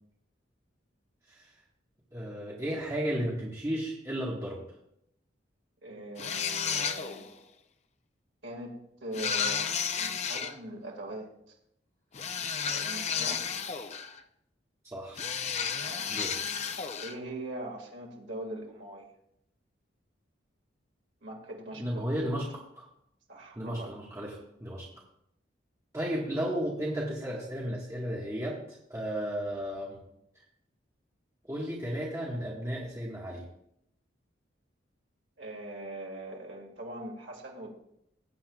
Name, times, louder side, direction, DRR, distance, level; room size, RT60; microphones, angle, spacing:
voice 1, 2.1-4.6 14.9-15.3 16.1-16.3 21.8-22.5 22.8-22.9 23.6-24.9 25.9-30.0 30.3-30.4 31.5-33.4, equal, 15° right, -5 dB, 1.5 m, -34 dB
voice 2, 5.8-7.3 8.4-11.3 12.7-13.5 15.8-16.1 17.0-19.1 21.2-22.3 23.3-24.0 35.4-37.7, right 1 dB, 80° right, -1 dB, 2.1 m, -41 dB
sound 1, 6.2-7.3 9.1-10.5 12.1-14.2 15.2-17.2, left 6 dB, 35° left, 0.5 m, -32 dB
18.0 x 8.6 x 2.4 m, 0.75 s
head